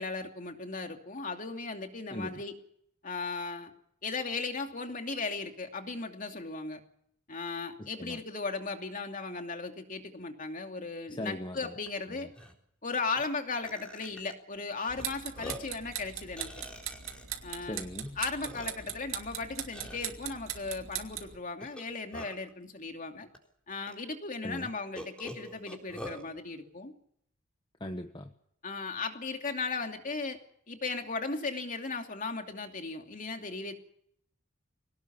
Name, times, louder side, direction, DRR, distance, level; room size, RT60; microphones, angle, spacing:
voice 1, 0.0-2.5 3.0-3.7 4.0-6.8 7.3-12.3 12.8-16.5 17.4-17.8 18.2-23.3 23.7-26.9 28.6-30.4 30.7-33.8, left 4 dB, 40° left, 4 dB, 2.7 m, -36 dB
voice 2, 7.8-8.2 11.1-11.7 12.1-12.2 17.7-18.2 24.4-24.7 27.8-28.3, left 1 dB, 25° left, 6 dB, 1.1 m, -39 dB
Burping eructation, 11.9-12.0 12.3-12.5 13.2-13.3 13.6-14.3 15.0-15.1 15.3-15.8 16.4-17.4 18.1-18.2 18.4-19.0 19.7-20.1 21.6-22.5 23.3-23.4 23.9-24.0 25.0-26.2, equal, 5° left, 3.9 m, -44 dB
sound 1, 14.9-21.4, right 10 dB, 85° right, 2.7 m, -40 dB
23.5 x 18.5 x 7.1 m, 0.71 s
head